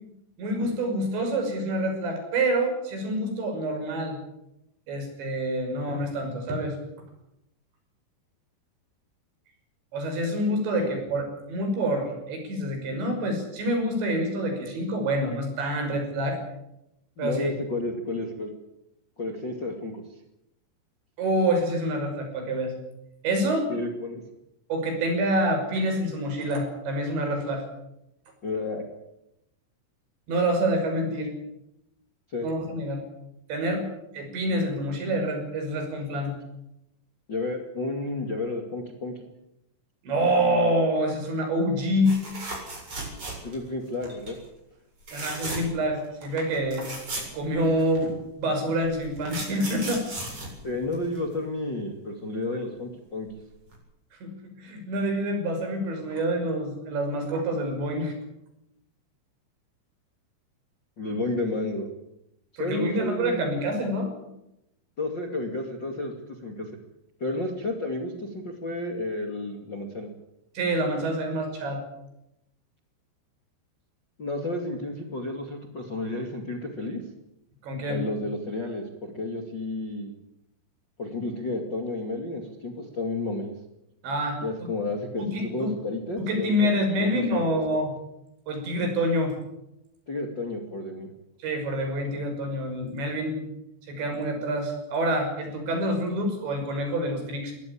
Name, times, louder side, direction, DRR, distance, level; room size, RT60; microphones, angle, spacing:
voice 1, 0.4-4.2 4.9-6.8 9.9-16.4 17.2-17.5 21.2-22.7 23.2-23.7 24.7-27.6 30.3-31.3 32.4-33.0 33.5-33.8 34.1-36.3 40.0-42.2 45.1-46.9 47.3-48.1 48.4-50.1 54.2-58.1 62.6-64.1 70.5-71.8 77.6-78.0 84.0-84.4 85.2-85.7 86.2-87.9 88.5-89.3 91.4-93.5 93.9-97.5, right 1 dB, 65° right, 4 dB, 8.2 m, -27 dB
voice 2, 17.2-18.5 19.2-20.0 23.7-24.2 28.4-28.8 32.3-32.5 37.3-39.3 43.4-44.4 50.6-53.3 61.0-61.9 62.5-63.6 65.0-66.1 66.4-66.7 67.2-70.1 74.2-77.0 77.9-80.1 81.0-83.5 84.4-85.3 85.5-86.5 86.9-87.6 90.1-91.1, left 2 dB, 35° left, 4 dB, 2.1 m, -31 dB
sound 1, 42.0-43.7 44.0-44.4 45.0-45.8 46.2-46.3 46.5-48.0 48.8-51.3 53.2-53.4 53.7-53.8, right 2 dB, 30° right, 8.7 m, -36 dB
23.0 x 18.0 x 8.6 m, 0.84 s
omnidirectional pair, 5.5 m